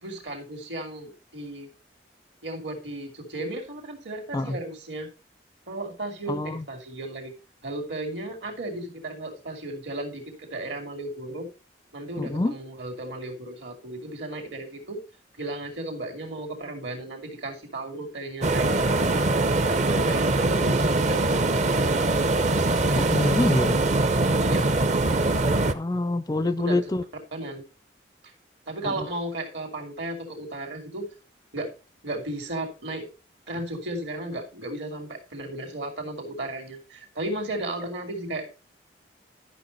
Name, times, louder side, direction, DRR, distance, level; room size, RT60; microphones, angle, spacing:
voice 1, 0.0-1.7 2.4-5.1 5.7-7.3 7.6-11.5 11.9-15.0 15.4-19.2 19.7-22.2 22.8-23.2 24.4-24.8 26.4-26.8 27.3-27.6 28.7-31.1 31.5-31.7 32.0-33.1 33.5-38.5, right 1 dB, 75° right, 2.6 m, -35 dB
voice 2, 6.3-6.6 12.2-12.6 23.0-23.8 25.7-27.0 28.8-29.1, left 2 dB, 20° left, 0.4 m, -26 dB
sound 1, 18.4-25.7, right 2 dB, 40° right, 0.6 m, -22 dB
12.0 x 6.1 x 4.0 m
head